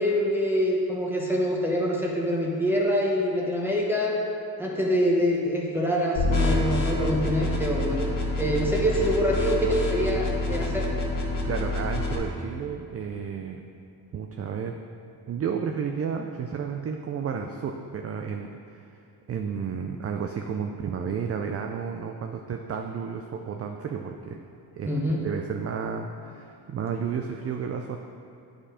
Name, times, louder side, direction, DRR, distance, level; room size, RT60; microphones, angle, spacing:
voice 1, 0.0-4.2 4.6-8.1 8.4-10.9 24.9-25.2, equal, 5° right, -3 dB, 1.0 m, -25 dB
sound 1, 6.2-12.2, left 2 dB, 50° left, 1.6 m, -27 dB
voice 2, 11.4-13.6 14.1-14.8 15.3-18.5 18.8-18.9 19.3-24.4 24.8-24.9 25.2-28.0, right 6 dB, 35° right, 4 dB, 0.5 m, -32 dB
8.6 x 5.1 x 5.0 m, 2.8 s
cardioid pair, 100°, 40 cm